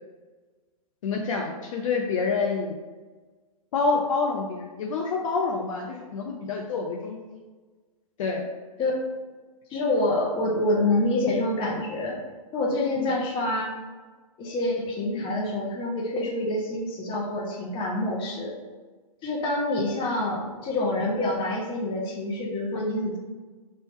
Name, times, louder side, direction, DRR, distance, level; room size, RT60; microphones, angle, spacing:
voice 1, 1.0-2.7 3.7-7.4 8.2-8.4 13.0-13.1, left 4 dB, 60° left, 0 dB, 0.5 m, -27 dB
voice 2, 9.7-12.2 12.5-13.7 14.4-18.5 19.2-23.2, left 2 dB, 25° left, -2 dB, 1.0 m, -26 dB
3.6 x 2.7 x 4.2 m, 1.4 s
hypercardioid pair, 120°, 19 cm